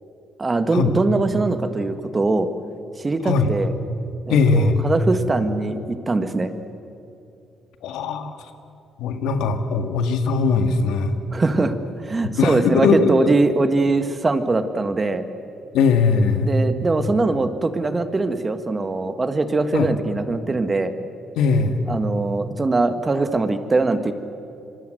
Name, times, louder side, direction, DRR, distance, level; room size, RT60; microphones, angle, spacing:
voice 1, 0.4-2.5 3.0-3.7 4.3-6.5 11.3-11.8 12.0-15.2 16.4-20.9 21.9-24.1, right 3 dB, 25° right, 9 dB, 1.7 m, -22 dB
voice 2, 4.3-4.8 7.8-8.3 9.0-11.2 12.4-13.3 15.7-16.5 19.7-19.9 21.4-21.8, left 4 dB, 90° left, 7 dB, 1.9 m, -19 dB
25.5 x 24.0 x 7.9 m, 2.7 s
cardioid pair, 90°, 0 cm